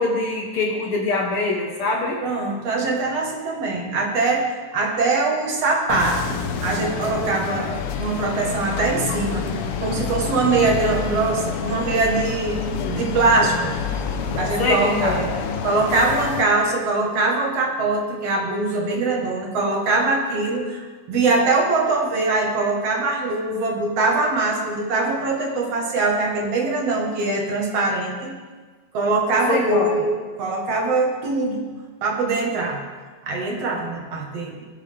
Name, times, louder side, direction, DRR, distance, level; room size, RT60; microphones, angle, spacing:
voice 1, 0.0-2.2 12.7-13.0 14.6-15.3 29.5-30.0, left 3 dB, 60° left, 0 dB, 1.8 m, -23 dB
voice 2, 2.2-7.7 8.0-9.5 9.8-12.6 12.9-13.8 14.4-15.3 15.6-28.4 28.9-30.1 30.4-31.7 32.0-32.8 33.2-34.6, right 3 dB, 60° right, 0 dB, 2.4 m, -22 dB
sound 1, 5.9-16.4, left 6 dB, 85° left, 1.2 m, -28 dB
19.5 x 7.4 x 3.4 m, 1.4 s
omnidirectional pair, 3.3 m